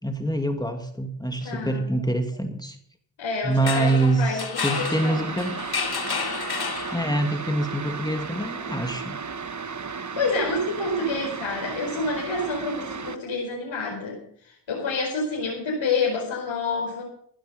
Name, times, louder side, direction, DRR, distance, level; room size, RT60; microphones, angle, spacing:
voice 1, 0.0-2.8 3.4-5.6 6.9-9.2, right 2 dB, 10° left, 5 dB, 2.4 m, -25 dB
voice 2, 1.4-1.9 3.2-5.3 10.2-17.0, left 3 dB, 75° left, -3 dB, 5.0 m, -28 dB
sound 1, 3.5-7.4, left 5 dB, 55° left, 2.5 m, -31 dB
sound 2, 4.7-13.2, right 5 dB, 40° right, 1.3 m, -34 dB
16.5 x 11.5 x 5.4 m, 0.64 s
cardioid pair, 55°, 45 cm